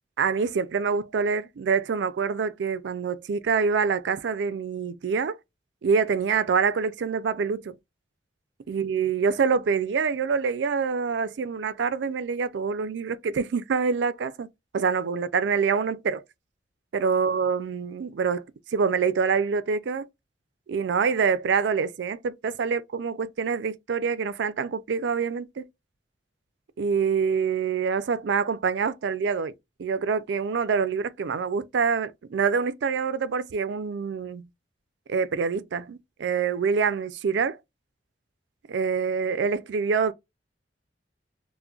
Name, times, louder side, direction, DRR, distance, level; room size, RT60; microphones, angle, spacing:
voice 1, 0.2-5.4 5.8-7.7 8.7-14.5 14.7-16.2 16.9-20.1 20.7-25.7 26.8-29.5 29.8-34.5 35.1-37.6 38.7-40.1, right 5 dB, 75° right, 0.4 m, -26 dB
2.3 x 2.1 x 3.7 m
head